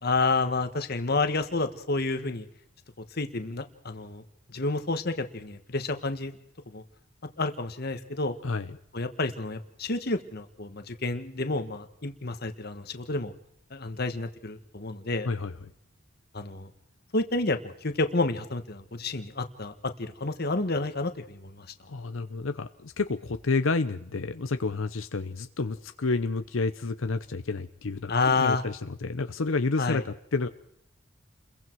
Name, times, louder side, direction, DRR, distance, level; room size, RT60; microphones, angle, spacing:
voice 1, 0.0-2.4 3.1-4.2 4.5-6.4 6.7-6.8 7.4-8.4 8.9-13.3 13.7-15.3 16.3-16.7 17.1-21.7 28.1-28.6 29.8-30.0, left 3 dB, 50° left, 8 dB, 1.5 m, -29 dB
voice 2, 8.4-8.8 15.2-15.5 21.9-30.5, left 3 dB, 90° left, 10 dB, 0.8 m, -30 dB
29.5 x 22.0 x 4.7 m, 0.73 s
head